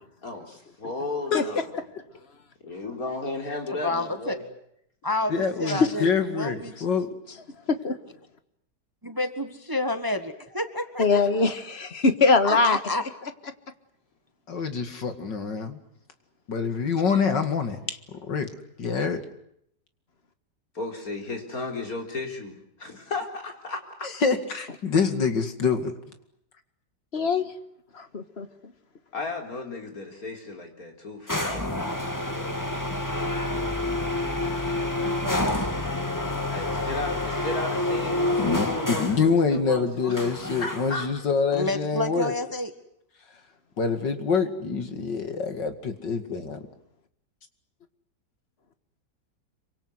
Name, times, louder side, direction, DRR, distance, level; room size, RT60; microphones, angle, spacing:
voice 1, 0.2-1.7 2.6-4.4 20.7-24.1 29.1-33.5 36.5-40.2 40.6-41.1, left 3 dB, 55° left, 3 dB, 4.6 m, -35 dB
voice 2, 3.8-4.4 5.0-6.7 9.0-11.2 12.4-13.0 34.9-35.6 41.5-42.7, left 2 dB, 15° right, 9 dB, 1.5 m, -29 dB
voice 3, 5.3-7.1 14.5-15.8 16.5-17.8 18.3-18.5 18.8-19.2 24.2-26.0 38.4-42.3 43.8-46.7, left 5 dB, 85° left, 8 dB, 3.0 m, -26 dB
voice 4, 11.0-12.8 27.1-27.5 27.9-28.5, left 4 dB, 35° left, 10 dB, 1.8 m, -22 dB
sound 1, 31.3-39.3 40.2-41.1, left 1 dB, 10° left, 2.1 m, -28 dB
26.5 x 24.5 x 8.1 m, 0.74 s
omnidirectional pair, 1.9 m